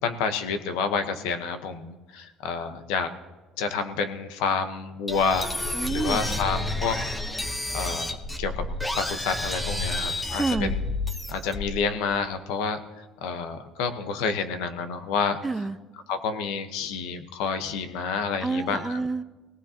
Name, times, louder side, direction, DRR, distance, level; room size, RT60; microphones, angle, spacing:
voice 1, 0.0-3.1 3.6-5.5 5.9-7.0 7.7-8.7 8.9-10.8 11.3-12.8 13.2-15.4 16.1-19.0, left 5 dB, 85° left, 9 dB, 1.1 m, -29 dB
sound 1, 5.1-11.9, left 2 dB, 15° left, 0.9 m, -30 dB
voice 2, 5.7-6.4 10.3-10.8 15.4-15.8 18.4-19.2, right 3 dB, 15° right, 14 dB, 0.5 m, -28 dB
19.5 x 18.0 x 2.9 m, 1.2 s
supercardioid pair, 100°, 0 cm